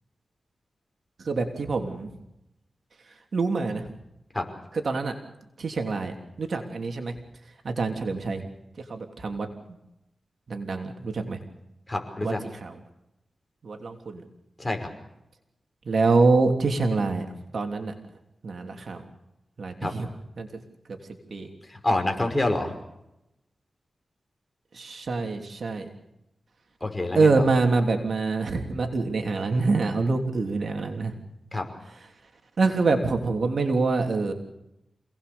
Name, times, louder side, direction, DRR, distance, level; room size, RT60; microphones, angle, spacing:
voice 1, 1.2-2.1 3.3-3.9 4.8-5.1 5.6-7.1 7.6-8.4 8.9-9.5 10.5-11.4 12.2-12.3 12.6-12.8 13.6-14.2 15.8-17.3 17.5-17.9 18.4-19.0 19.6-20.1 20.4-20.5 20.9-21.0 21.3-21.5 24.7-25.9 27.1-31.1 32.6-34.3, right 3 dB, 70° right, 4 dB, 3.1 m, -25 dB
voice 2, 11.9-12.4 14.6-14.9 19.8-19.9 21.7-22.8 26.8-27.5 31.5-31.6, left 2 dB, 20° left, 4 dB, 5.5 m, -27 dB
27.5 x 19.0 x 7.0 m, 0.88 s
cardioid pair, 65°, 0 cm